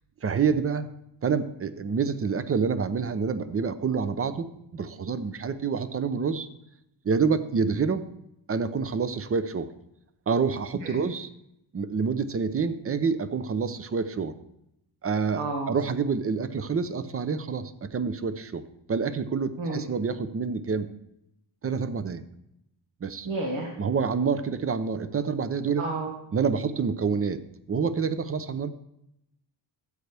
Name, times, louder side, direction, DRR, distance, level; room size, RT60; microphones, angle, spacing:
voice 1, 0.2-0.9 1.2-6.5 7.0-8.1 8.5-9.7 10.3-11.3 11.7-14.3 15.0-18.6 18.9-20.9 21.6-22.2 23.0-23.3 23.8-25.8 26.3-27.4 27.7-28.7, right 5 dB, 30° right, 13 dB, 0.6 m, -27 dB
voice 2, 15.4-15.7 19.6-19.8 23.3-23.7 25.8-26.1, right 2 dB, 80° right, 0 dB, 1.9 m, -30 dB
13.0 x 8.0 x 3.4 m, 0.81 s
cardioid pair, 115°, 47 cm